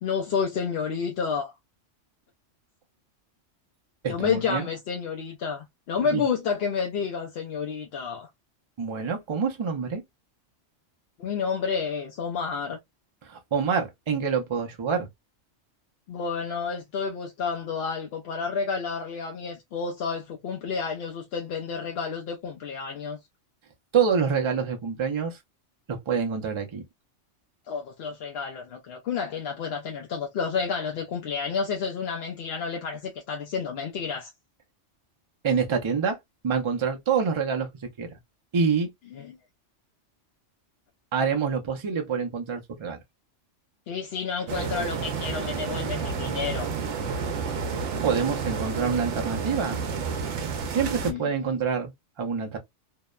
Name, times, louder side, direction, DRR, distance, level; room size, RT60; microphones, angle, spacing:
voice 1, 0.0-1.5 4.1-8.3 11.2-12.8 16.1-23.2 27.7-34.3 39.1-39.4 43.9-46.7 51.0-51.3, left 6 dB, 65° left, 0.7 m, -30 dB
voice 2, 4.0-4.7 6.0-6.2 8.8-10.0 13.3-15.1 23.9-25.3 25.9-26.8 35.4-36.2 36.4-37.7 38.0-38.2 38.5-38.9 41.1-43.0 48.0-49.8 50.7-51.9 52.2-52.6, right 6 dB, 50° right, 0.3 m, -26 dB
sound 1, 44.5-51.1, right 5 dB, 75° right, 0.9 m, -30 dB
2.8 x 2.0 x 2.2 m
omnidirectional pair, 1.3 m